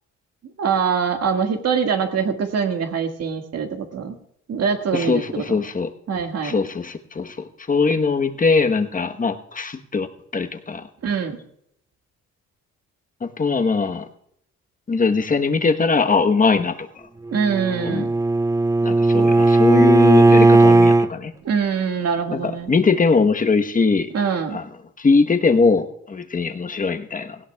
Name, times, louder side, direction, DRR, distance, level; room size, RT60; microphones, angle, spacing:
voice 1, 0.6-4.2 4.5-5.6 6.1-6.5 11.0-11.4 17.3-18.1 21.4-22.7 24.1-24.6, right 6 dB, 55° right, 4 dB, 1.8 m, -23 dB
voice 2, 4.9-5.9 6.4-7.4 7.7-10.1 10.3-10.8 13.2-14.0 14.9-16.7 17.8-18.1 18.8-21.3 22.3-24.1 24.5-24.6 25.0-27.4, left 4 dB, 25° left, 6 dB, 1.1 m, -21 dB
Bowed string instrument, 17.3-21.1, right 2 dB, 10° right, 0.4 m, -15 dB
18.0 x 16.0 x 2.3 m, 0.72 s
cardioid pair, 90°, 30 cm